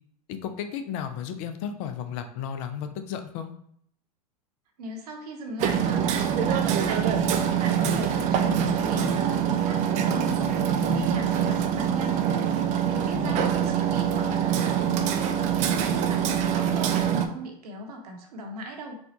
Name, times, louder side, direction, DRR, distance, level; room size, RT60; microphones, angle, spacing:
voice 1, 0.3-3.5 13.1-13.4, left 8 dB, 50° left, 7 dB, 0.5 m, -34 dB
voice 2, 4.8-12.2 12.8-19.0, right 1 dB, 70° right, 2 dB, 0.9 m, -38 dB
Hammer, 5.6-17.3, right 8 dB, 35° right, 0.4 m, -24 dB
4.2 x 2.3 x 2.8 m, 0.67 s
hypercardioid pair, 95°, 20 cm